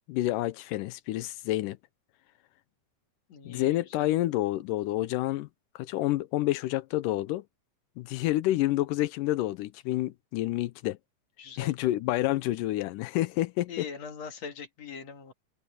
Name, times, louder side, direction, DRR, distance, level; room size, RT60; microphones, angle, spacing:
voice 1, 0.1-1.8 3.5-5.5 5.8-7.4 8.0-11.0 11.6-13.9, left 16 dB, 90° left, 2.3 m, -28 dB
voice 2, 3.3-4.1 11.4-11.7 13.7-15.3, left 6 dB, 55° left, 3.0 m, -42 dB
omnidirectional pair, 3.7 m